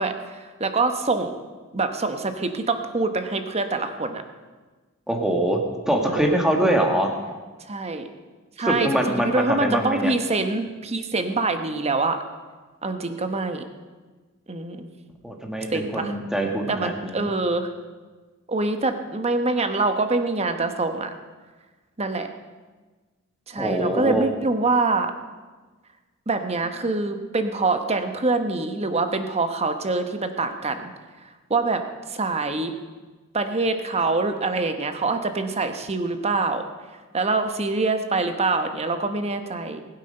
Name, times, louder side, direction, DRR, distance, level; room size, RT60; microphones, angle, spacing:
voice 1, 0.0-1.3 1.7-4.2 6.1-6.4 7.7-8.0 8.6-12.2 12.8-13.6 14.5-14.9 15.7-16.1 16.7-17.7 18.5-21.1 22.0-22.3 23.5-25.1 26.3-30.9 31.5-31.8 32.1-32.7 33.3-36.6 37.1-39.8, right 3 dB, 30° right, 7 dB, 1.0 m, -25 dB
voice 2, 5.1-5.6 5.9-7.1 8.6-10.1 15.2-17.3 23.5-24.3, right 1 dB, 5° right, 1 dB, 1.7 m, -23 dB
19.5 x 8.3 x 5.4 m, 1.3 s
head